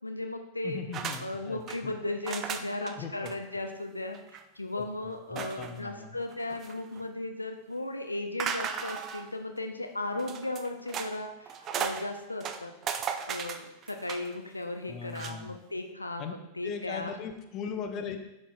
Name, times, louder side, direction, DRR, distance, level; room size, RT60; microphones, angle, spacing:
voice 1, 0.0-0.8 1.2-12.7 13.3-17.1, left 2 dB, 85° left, 5 dB, 0.4 m, -36 dB
voice 2, 0.6-2.0 3.0-3.3 4.8-6.2 14.9-15.5 16.2-16.3 16.6-18.2, left 6 dB, 35° left, 7 dB, 0.6 m, -39 dB
sound 1, 0.9-1.2 1.5-1.8 2.2-2.9 3.2-3.4 3.7-3.8 4.1-4.4 5.4-5.8 6.3-7.0 8.4-9.3 10.2-11.1 11.5-12.0 12.4-14.3 15.1-15.3, right 7 dB, 30° right, 0.4 m, -36 dB
11.0 x 4.4 x 2.4 m, 0.94 s
figure-of-eight pair, 90°, 0 cm